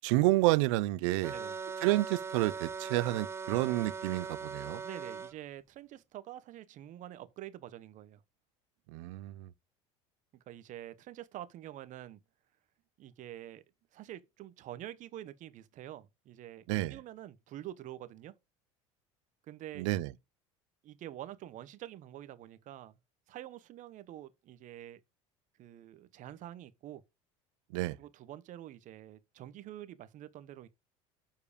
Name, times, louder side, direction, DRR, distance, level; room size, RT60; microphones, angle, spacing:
voice 1, 0.0-1.3 1.8-4.8 8.9-9.5 16.7-17.0 19.8-20.1 27.7-28.0, right 19 dB, 75° right, 0.5 m, -29 dB
sound 1, 1.2-5.3, right 5 dB, 15° right, 0.4 m, -40 dB
voice 2, 4.8-8.2 10.3-12.2 13.0-13.6 13.9-18.3 19.5-19.9 20.8-22.9 23.3-25.0 25.6-27.0 28.0-30.7, right 13 dB, 55° right, 1.0 m, -47 dB
7.1 x 4.8 x 5.1 m
supercardioid pair, 90°, 16 cm